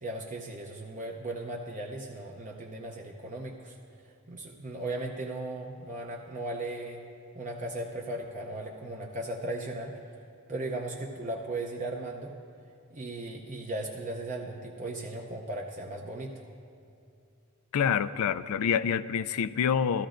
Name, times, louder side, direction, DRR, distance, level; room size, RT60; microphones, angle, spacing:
voice 1, 0.0-7.0 7.3-10.0 10.5-12.4 12.9-16.3, right 2 dB, 35° right, 0 dB, 0.6 m, -37 dB
voice 2, 17.7-20.1, left 7 dB, 75° left, 15 dB, 0.3 m, -27 dB
14.5 x 14.0 x 2.5 m, 2.6 s
head